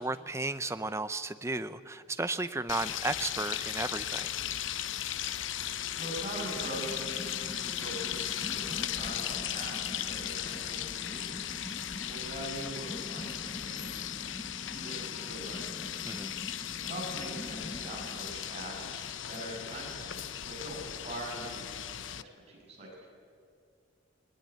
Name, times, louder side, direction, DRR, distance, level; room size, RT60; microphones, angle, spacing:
voice 1, 0.0-4.3 16.0-16.4, right 2 dB, 15° right, 12 dB, 0.6 m, -34 dB
sound 1, 2.7-22.2, left 11 dB, 65° left, 0.6 m, -37 dB
voice 2, 6.0-14.5 14.7-15.8 16.8-22.2 22.5-23.1, right 1 dB, 35° right, -2 dB, 7.1 m, -43 dB
sound 2, 6.5-19.2, left 1 dB, 20° left, 0.8 m, -46 dB
21.0 x 20.5 x 9.4 m, 2.2 s
head